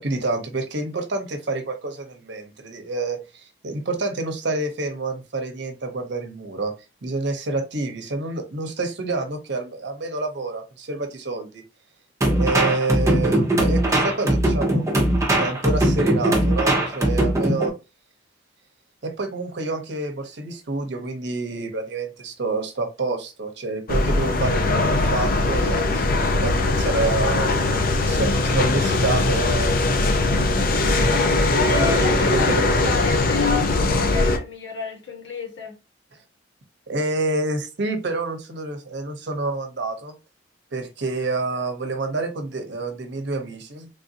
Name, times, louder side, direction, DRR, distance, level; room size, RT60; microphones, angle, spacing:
voice 1, 0.0-6.7 7.0-11.6 12.3-17.7 19.0-30.0 31.7-32.7 36.9-40.1 40.7-43.9, right 3 dB, 65° right, 0.8 m, -28 dB
sound 1, 12.2-17.7, right 1 dB, 15° right, 0.8 m, -20 dB
sound 2, 23.9-34.4, left 2 dB, 50° left, 0.5 m, -20 dB
voice 2, 31.6-35.8, left 5 dB, 80° left, 1.3 m, -30 dB
3.4 x 2.6 x 2.7 m
head